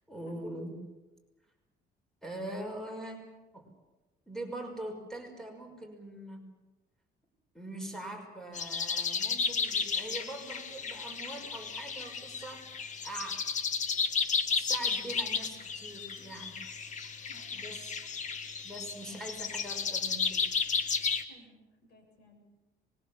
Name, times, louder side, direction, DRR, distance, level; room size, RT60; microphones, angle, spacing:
voice 1, 0.1-0.8 2.2-3.2 3.5-3.7 4.3-6.5 7.5-13.4 14.5-16.7 17.5-18.0 18.6-20.5, right 1 dB, 5° left, 3 dB, 6.0 m, -42 dB
sound 1, 8.5-21.2, left 5 dB, 45° left, 1.8 m, -33 dB
voice 2, 17.3-17.7 19.1-19.3 21.3-22.4, left 1 dB, 70° left, 3 dB, 7.6 m, -59 dB
25.0 x 22.5 x 7.4 m, 1.1 s
cardioid pair, 110°, 17 cm